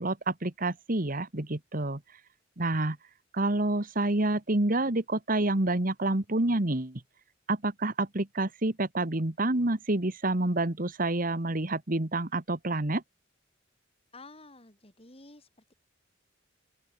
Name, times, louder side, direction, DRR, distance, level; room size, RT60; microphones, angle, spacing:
voice 1, 0.0-2.2 2.6-3.0 3.3-7.0 7.5-13.0, right 2 dB, 45° right, 1.7 m, -28 dB
voice 2, 14.1-15.7, left 2 dB, 30° left, 6.4 m, -51 dB
open air
head